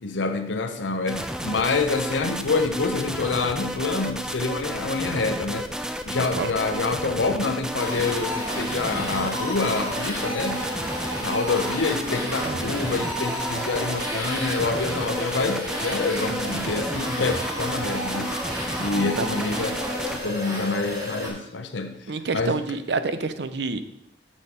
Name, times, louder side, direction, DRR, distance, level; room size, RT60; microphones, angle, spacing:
voice 1, 0.0-5.7 6.0-10.6 11.2-18.3 18.8-19.8 20.1-22.6, left 3 dB, 85° left, 6 dB, 0.8 m, -27 dB
sound 1, 1.1-20.2, right 1 dB, 5° right, 0.4 m, -32 dB
voice 2, 6.2-6.5 12.4-12.7 18.9-19.4 22.1-23.8, right 3 dB, 65° right, 11 dB, 0.6 m, -28 dB
sound 2, 7.8-21.3, equal, 20° right, 2.1 m, -32 dB
7.3 x 6.3 x 5.2 m, 0.78 s
head